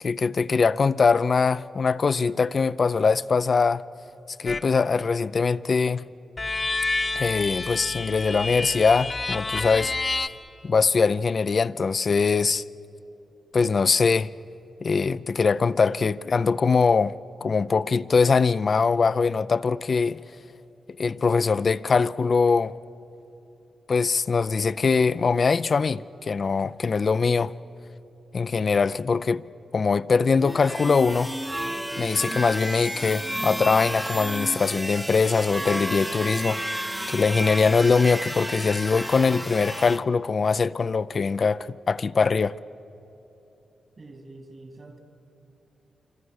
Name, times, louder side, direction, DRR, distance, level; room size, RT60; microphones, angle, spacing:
voice 1, 0.0-3.8 4.4-6.1 7.1-10.3 10.6-12.6 13.5-14.3 14.8-17.1 17.4-20.2 21.0-22.7 23.9-27.5 28.3-29.4 29.7-31.3 32.0-42.6, left 5 dB, 55° left, 0.5 m, -22 dB
sound 1, 4.5-4.7 6.4-10.3, left 3 dB, 40° left, 1.0 m, -29 dB
sound 2, 30.4-40.0, right 1 dB, 10° right, 0.9 m, -32 dB
voice 2, 44.0-45.0, right 2 dB, 55° right, 3.0 m, -45 dB
26.5 x 24.0 x 6.5 m
supercardioid pair, 50°, 0 cm